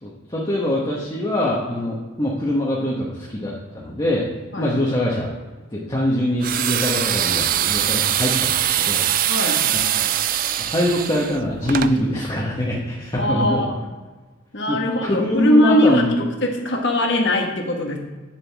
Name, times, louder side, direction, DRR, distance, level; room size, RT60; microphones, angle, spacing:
voice 1, 0.0-4.3 4.6-5.3 5.7-9.1 10.0-10.1 10.6-13.6 14.7-16.1, left 1 dB, 20° left, -5 dB, 1.1 m, -23 dB
sound 1, 6.4-11.9, right 11 dB, 40° right, 0.3 m, -22 dB
voice 2, 9.3-9.6 13.1-13.8 14.5-18.0, left 1 dB, 55° left, 2 dB, 1.4 m, -21 dB
9.3 x 7.1 x 3.5 m, 1.3 s
head